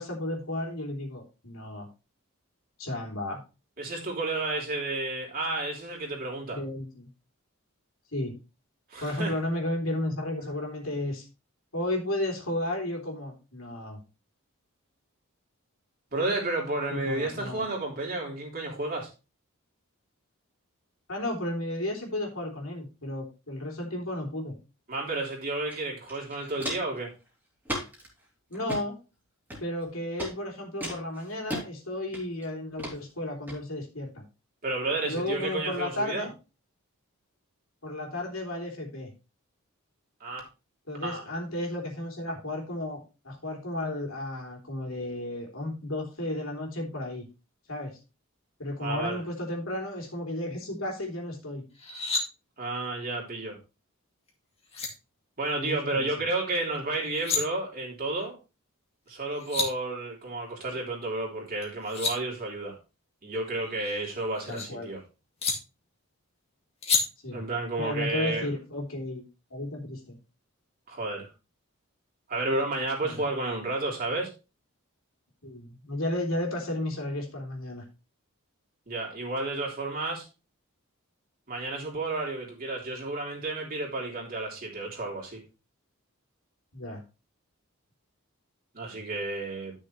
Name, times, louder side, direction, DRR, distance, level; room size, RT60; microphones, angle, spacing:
voice 1, 0.0-1.9 2.8-3.4 6.5-7.1 8.1-8.3 9.0-11.2 11.7-14.0 16.9-17.6 21.1-24.6 28.5-28.9 29.6-34.2 35.0-36.3 37.8-39.1 40.9-47.2 47.7-48.0 48.6-51.6 55.5-56.1 64.5-64.9 67.2-67.4 67.8-70.2 73.0-73.2 75.4-77.8 86.7-87.0, left 1 dB, 70° left, 3.1 m, -33 dB
voice 2, 3.8-6.6 8.9-9.3 16.1-19.1 24.9-27.1 34.6-36.3 40.2-40.4 41.0-41.3 48.8-49.2 52.6-53.6 55.4-58.4 59.1-62.8 63.2-65.0 67.3-68.5 70.9-71.3 72.3-74.3 78.9-80.3 81.5-85.4 88.7-89.7, right 2 dB, 40° right, 3.5 m, -31 dB
Walk footsteps, 25.7-25.8 26.1-27.0 27.6-28.1 28.5-28.8 29.5-29.9 30.2-30.3 30.8-31.6 32.1-32.5 32.8-33.0 33.5-33.6, equal, 10° right, 3.0 m, -35 dB
sound 1, 51.7-52.2 54.3-54.4 54.7-54.9 57.0-57.4 59.1-59.2 59.3-59.7 61.6-62.1 63.6-64.7 65.4-65.5 66.8-67.0, left 4 dB, 30° left, 2.1 m, -29 dB
11.5 x 6.4 x 3.2 m
head